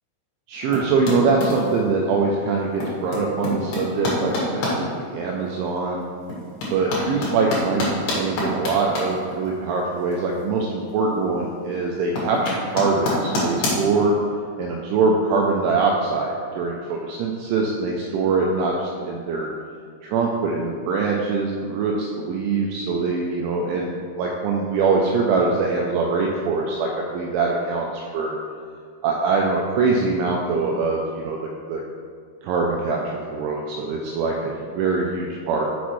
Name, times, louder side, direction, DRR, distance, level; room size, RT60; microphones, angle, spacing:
voice 1, 0.5-6.1 6.7-14.1 14.6-19.5 20.0-28.3 29.0-31.8 32.4-35.6, right 4 dB, 85° right, -1 dB, 2.7 m, -23 dB
sound 1, 0.7-1.9 2.7-4.7 5.3-5.4 6.0-10.6 10.9-11.5 11.7-13.8, left 2 dB, 60° left, 2.6 m, -27 dB
7.1 x 6.1 x 3.1 m, 2.2 s
omnidirectional pair, 5.9 m